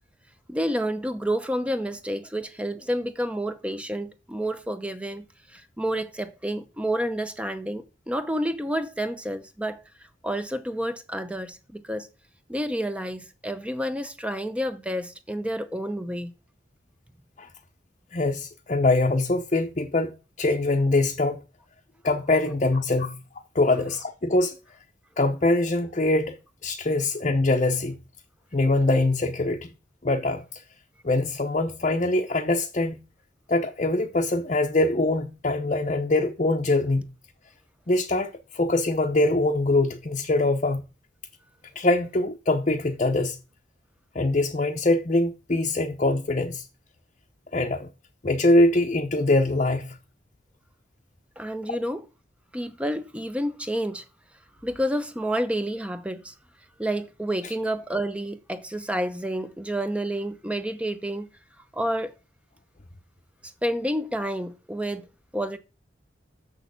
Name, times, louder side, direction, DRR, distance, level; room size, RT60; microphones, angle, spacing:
voice 1, 0.5-9.8 10.2-12.1 12.5-16.3 51.4-52.1 52.5-54.0 54.6-56.3 56.8-61.3 61.7-62.1 63.6-65.1 65.3-65.6, equal, 5° right, 0.7 m, -29 dB
voice 2, 18.1-20.1 20.4-21.4 22.0-23.2 23.5-24.5 25.2-26.4 26.6-27.9 28.5-29.7 30.0-30.4 31.0-33.0 33.5-37.1 37.9-40.8 41.7-43.4 44.1-46.6 47.5-47.9 48.2-50.0, left 2 dB, 40° left, 0.8 m, -23 dB
7.0 x 6.5 x 7.0 m
head